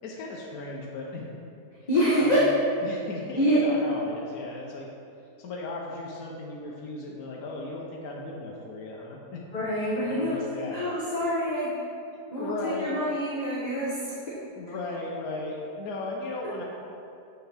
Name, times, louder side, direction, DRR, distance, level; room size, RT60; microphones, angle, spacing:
voice 1, 0.0-1.3 2.2-2.4 2.8-4.9 5.4-9.4 10.1-10.8 12.3-12.9 14.6-16.7, left 2 dB, 65° left, -2 dB, 1.3 m, -36 dB
voice 2, 1.9-2.4 3.3-3.6 9.5-10.4 10.7-11.7 12.3-14.1, equal, 30° left, -9 dB, 1.0 m, -26 dB
6.8 x 6.8 x 3.4 m, 2.7 s
omnidirectional pair, 1.8 m